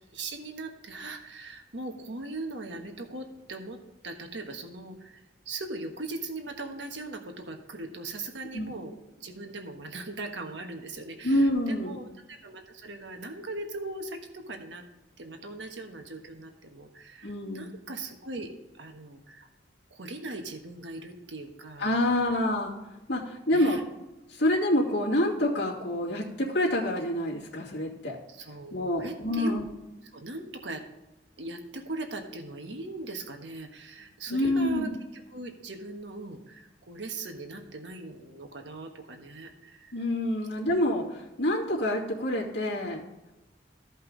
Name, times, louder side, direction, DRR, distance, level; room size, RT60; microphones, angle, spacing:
voice 1, 0.1-14.8 15.2-18.5 18.7-19.5 19.9-22.0 23.5-23.8 28.3-29.5 30.1-30.8 31.4-39.9, right 2 dB, 85° right, 4 dB, 1.3 m, -39 dB
voice 2, 11.2-12.0 17.2-17.8 21.8-22.7 23.1-23.8 24.3-28.2 28.7-29.6 34.3-34.9 39.9-43.0, left 1 dB, 70° left, -6 dB, 2.5 m, -27 dB
14.5 x 5.4 x 3.9 m, 1.0 s
head